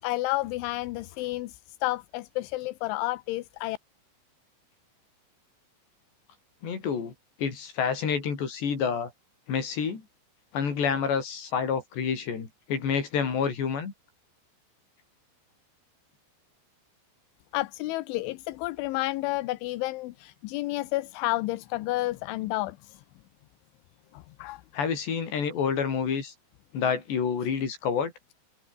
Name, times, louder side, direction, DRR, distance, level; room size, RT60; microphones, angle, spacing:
voice 1, 0.0-3.8 17.5-23.0 24.1-24.6, left 19 dB, 80° left, 3.3 m, -31 dB
voice 2, 6.6-7.1 7.4-9.1 9.5-10.0 10.5-13.9 24.7-26.3 26.7-28.1, left 6 dB, 60° left, 6.9 m, -28 dB
omnidirectional pair, 5.6 m